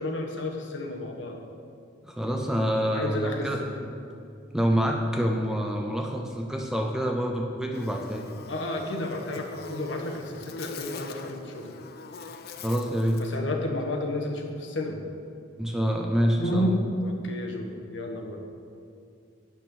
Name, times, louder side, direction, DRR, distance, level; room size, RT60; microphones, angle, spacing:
voice 1, 0.0-1.4 2.8-3.8 8.5-11.7 13.2-15.0 16.4-18.4, left 1 dB, 65° left, 2 dB, 1.1 m, -31 dB
voice 2, 2.0-3.6 4.5-8.3 12.6-13.2 15.6-16.7, equal, 5° right, 1 dB, 0.6 m, -26 dB
Buzz, 7.7-13.3, left 4 dB, 50° left, 0.5 m, -43 dB
8.8 x 5.9 x 6.0 m, 2.4 s
head